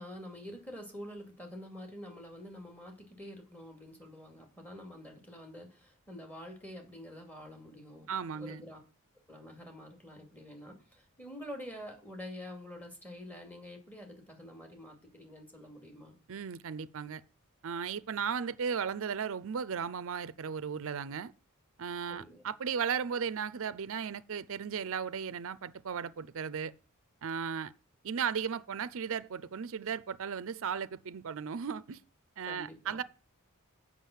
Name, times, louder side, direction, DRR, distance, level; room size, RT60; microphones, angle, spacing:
voice 1, 0.0-8.1 8.3-8.8 9.3-16.2 22.1-22.4 32.4-33.0, equal, 5° left, 2.4 m, -47 dB
voice 2, 8.1-8.6 16.3-17.2 17.6-21.3 21.8-26.7 27.2-27.7 28.0-32.0 32.4-33.0, right 6 dB, 65° right, 0.5 m, -36 dB
7.5 x 6.1 x 7.1 m
head